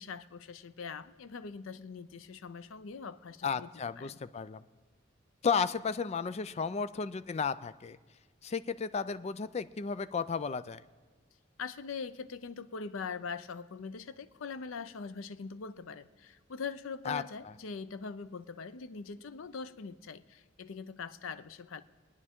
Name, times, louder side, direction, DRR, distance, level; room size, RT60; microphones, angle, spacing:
voice 1, 0.0-3.7 4.0-4.2 11.6-21.8, left 5 dB, 90° left, 13 dB, 0.5 m, -42 dB
voice 2, 3.4-4.6 5.4-8.0 8.4-10.8 17.1-17.5, left 5 dB, 35° left, 14 dB, 0.4 m, -33 dB
24.5 x 9.6 x 3.6 m, 1.4 s
head